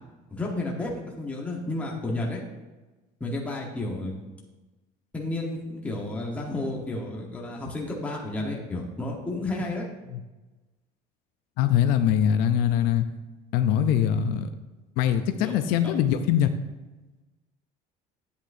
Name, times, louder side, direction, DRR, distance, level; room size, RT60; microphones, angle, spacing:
voice 1, 0.3-2.4 3.2-4.2 5.1-9.9 15.4-15.6 15.8-15.9, left 2 dB, 10° left, -2 dB, 1.1 m, -31 dB
voice 2, 11.6-13.0 13.5-14.5 15.0-16.5, left 9 dB, 75° left, 8 dB, 0.5 m, -22 dB
10.5 x 8.2 x 2.6 m, 1.2 s
cardioid pair, 165°, 15 cm